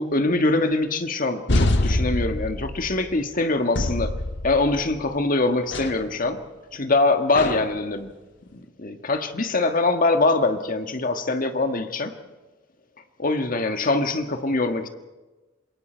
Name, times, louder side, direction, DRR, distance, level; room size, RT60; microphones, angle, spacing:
voice 1, 0.0-4.2 4.4-6.4 6.7-8.1 8.5-12.2 13.2-14.9, left 2 dB, 45° left, 7 dB, 1.6 m, -23 dB
sound 1, 1.5-3.1 3.8-5.0 5.7-6.1 7.4-7.8, left 1 dB, 65° left, 1.5 m, -25 dB
27.5 x 22.0 x 4.5 m, 1.2 s
head